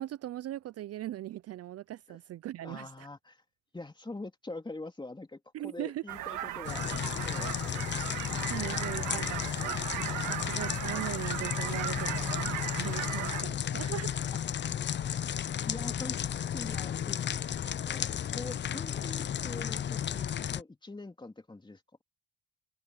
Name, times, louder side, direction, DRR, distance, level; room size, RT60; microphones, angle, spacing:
voice 1, 0.0-3.1 5.5-6.0 8.5-9.4 10.3-14.2, right 13 dB, 55° right, 0.4 m, -39 dB
voice 2, 2.6-3.4 3.7-7.8 13.1-13.2 15.7-17.2 17.8-18.0 18.3-22.0, left 2 dB, 15° left, 2.9 m, -44 dB
sound 1, 6.1-13.4, right 13 dB, 90° right, 1.7 m, -37 dB
sound 2, 6.6-20.6, left 9 dB, 40° left, 0.5 m, -33 dB
open air
cardioid pair, 90°, 30 cm